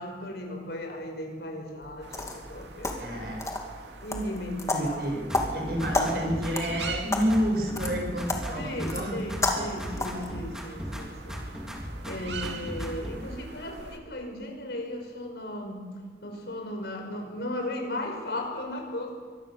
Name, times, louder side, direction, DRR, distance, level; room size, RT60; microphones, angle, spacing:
voice 1, 0.0-3.5 4.0-5.4 6.0-6.1 8.5-11.4 12.1-15.9 16.2-19.1, left 1 dB, 70° left, 3 dB, 5.5 m, -36 dB
sound 1, 1.8-10.3, left 2 dB, 20° left, 2.5 m, -33 dB
sound 2, 2.0-14.0, right 4 dB, 80° right, 2.5 m, -45 dB
voice 2, 3.0-3.4 4.7-5.2 5.5-9.2, equal, 60° right, 1 dB, 6.7 m, -29 dB
sound 3, 5.3-7.0 7.3-9.0 9.3-11.0 11.3-13.2, equal, 5° right, 3.3 m, -37 dB
24.5 x 20.0 x 7.2 m, 1.5 s
head